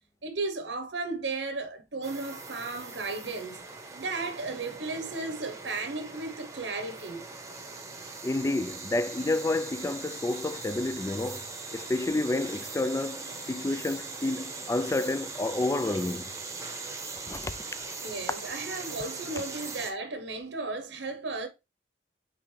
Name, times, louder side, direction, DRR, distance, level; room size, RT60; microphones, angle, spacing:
voice 1, 0.2-3.6 3.9-7.2 18.0-21.5, right 3 dB, 70° right, 0.9 m, -35 dB
cicadas at park, 2.0-19.9, right 3 dB, 15° right, 0.9 m, -40 dB
voice 2, 8.2-11.5 11.7-16.3 17.3-17.5, left 2 dB, 15° left, 0.3 m, -30 dB
8.3 x 3.6 x 3.2 m
head